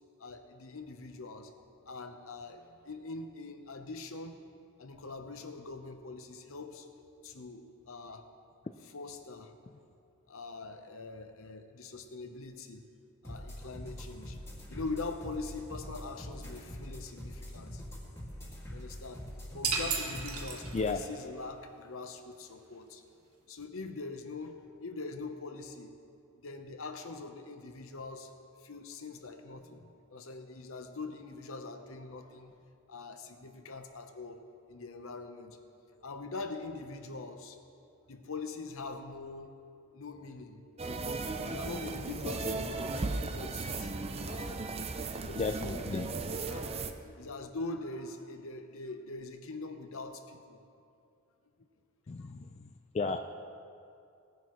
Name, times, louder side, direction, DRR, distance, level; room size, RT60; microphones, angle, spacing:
voice 1, 0.2-1.5 1.9-4.4 4.8-6.9 7.2-8.3 8.8-9.5 10.3-12.9 13.2-17.8 18.7-23.0 23.5-25.9 26.4-28.3 28.6-32.6 32.9-35.6 36.0-37.6 38.1-39.6 39.9-40.6 41.4-43.9 44.2-44.8 45.1-45.8 46.3-50.6 52.2-52.3, left 3 dB, 65° left, 7 dB, 0.9 m, -43 dB
sound 1, 13.2-21.0, equal, 10° left, 2.2 m, -44 dB
sound 2, 19.6-21.1, right 5 dB, 80° right, 1.4 m, -34 dB
sound 3, 40.8-46.9, right 3 dB, 25° right, 0.5 m, -36 dB
voice 2, 45.4-46.1 52.1-52.7 52.9-53.2, left 4 dB, 30° left, 6 dB, 0.3 m, -33 dB
19.5 x 10.0 x 3.1 m, 2.5 s
head